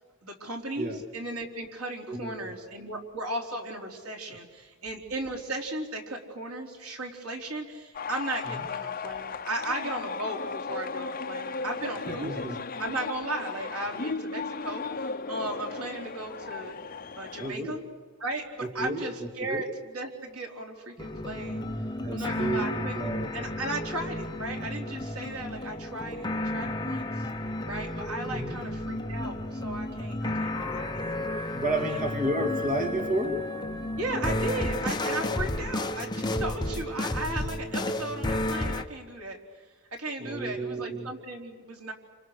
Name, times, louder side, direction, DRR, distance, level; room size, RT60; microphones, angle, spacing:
voice 1, 0.2-12.5 12.8-16.8 17.2-17.8 18.2-21.6 22.1-23.0 23.3-27.3 27.7-31.2 31.9-32.2 34.0-39.4 40.0-41.9, right 1 dB, 75° right, 1 dB, 4.0 m, -36 dB
voice 2, 2.1-2.5 8.5-8.6 12.1-12.6 17.4-17.8 18.6-19.6 22.0-22.7 22.9-23.3 28.3-28.6 30.0-30.1 31.5-33.5 40.2-41.1, right 1 dB, 40° right, 3 dB, 2.3 m, -31 dB
sound 1, 7.9-17.5, left 4 dB, 40° left, 0.8 m, -36 dB
sound 2, 21.0-38.8, left 1 dB, 20° left, 1.1 m, -32 dB
28.5 x 26.5 x 6.7 m, 1.4 s
head